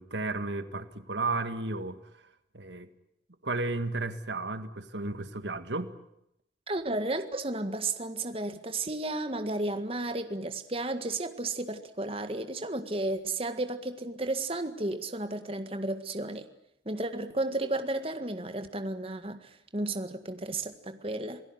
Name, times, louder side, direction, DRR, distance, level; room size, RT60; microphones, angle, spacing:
voice 1, 0.0-2.0 2.5-2.9 3.4-5.9, right 3 dB, 85° right, 1.9 m, -33 dB
voice 2, 6.7-16.5 16.9-21.4, right 2 dB, 30° right, 1.8 m, -33 dB
27.5 x 18.0 x 9.6 m
head